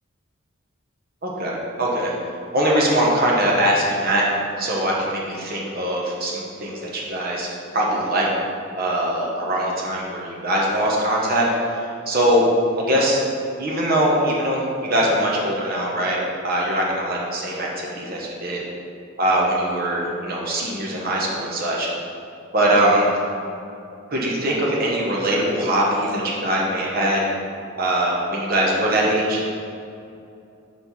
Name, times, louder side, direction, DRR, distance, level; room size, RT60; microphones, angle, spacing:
voice 1, 1.2-2.1 2.5-4.2 4.6-8.3 8.8-12.4 12.8-13.2 13.6-16.2 16.4-18.6 19.2-21.9 22.5-23.1 24.1-27.2 27.8-29.4, right 1 dB, 45° right, -3 dB, 1.0 m, -22 dB
4.6 x 4.3 x 5.4 m, 2.6 s
head